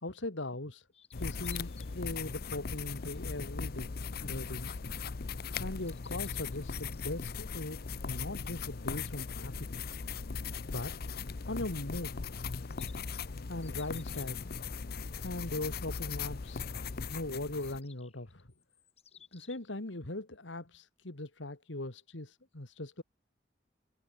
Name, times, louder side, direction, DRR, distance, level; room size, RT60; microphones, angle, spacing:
voice 1, 0.0-0.9 1.2-3.9 4.2-4.8 5.6-9.7 10.7-11.0 11.5-12.2 13.5-14.4 15.2-16.7 17.1-18.5 19.3-23.0, left 2 dB, 80° left, 2.4 m, -40 dB
sound 1, 0.9-2.0 2.5-2.8 3.6-3.7 5.5-7.1 9.6-9.7 10.0-10.1 12.4-14.8 16.6-16.7 17.5-19.7, left 8 dB, 35° left, 7.3 m, -59 dB
sound 2, 1.1-17.8, left 5 dB, 55° left, 0.7 m, -39 dB
head